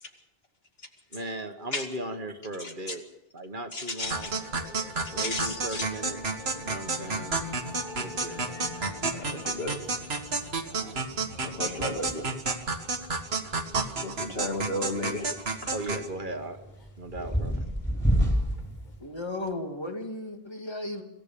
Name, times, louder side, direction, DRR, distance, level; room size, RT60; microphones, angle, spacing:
voice 1, 1.1-3.0 3.3-4.3 5.1-7.4 8.0-8.4 10.7-11.1 14.2-14.4 15.7-16.6 17.0-17.7, right 1 dB, 55° right, 7 dB, 1.7 m, -37 dB
voice 2, 2.6-3.0 3.7-4.3 5.1-5.9 9.1-9.9 11.3-12.3 14.0-15.3 15.6-15.7 17.2-17.3, left 1 dB, 70° left, 3 dB, 2.8 m, -34 dB
Musical instrument, 4.0-19.5, left 2 dB, 45° left, 1.6 m, -46 dB
sound 1, 4.1-16.1, right 3 dB, 80° right, 1.9 m, -31 dB
sound 2, 4.8-19.0, equal, 10° left, 4.0 m, -34 dB
voice 3, 19.0-21.0, left 2 dB, 25° left, 4 dB, 2.2 m, -35 dB
26.0 x 14.5 x 7.0 m, 0.94 s
omnidirectional pair, 1.0 m